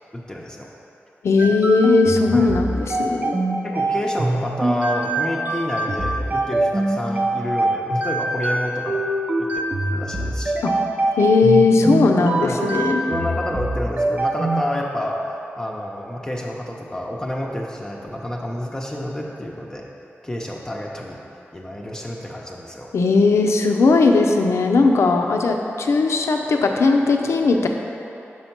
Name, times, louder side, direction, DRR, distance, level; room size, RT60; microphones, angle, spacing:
voice 1, 0.1-0.8 2.3-2.5 3.6-9.1 9.4-9.5 9.9-10.6 12.4-12.6 13.1-19.9 20.2-21.2 21.5-22.9, equal, 15° left, -2 dB, 0.7 m, -29 dB
voice 2, 1.2-3.3 10.6-10.7 11.2-13.0 22.9-27.7, left 3 dB, 80° left, 3 dB, 0.5 m, -17 dB
sound 1, 1.4-14.6, right 2 dB, 35° right, 0.7 m, -24 dB
6.1 x 4.4 x 5.9 m, 2.9 s
wide cardioid pair, 80°, 5 cm